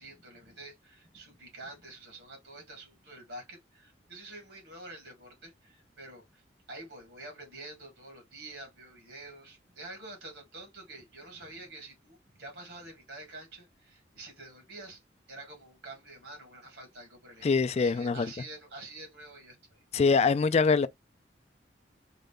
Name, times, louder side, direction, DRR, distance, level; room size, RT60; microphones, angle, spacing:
voice 1, 0.0-6.4 6.7-15.0 15.3-19.8, right 2 dB, 80° right, 1.9 m, -47 dB
voice 2, 17.4-18.3 19.9-20.9, left 4 dB, 35° left, 0.3 m, -24 dB
3.8 x 2.2 x 3.6 m
head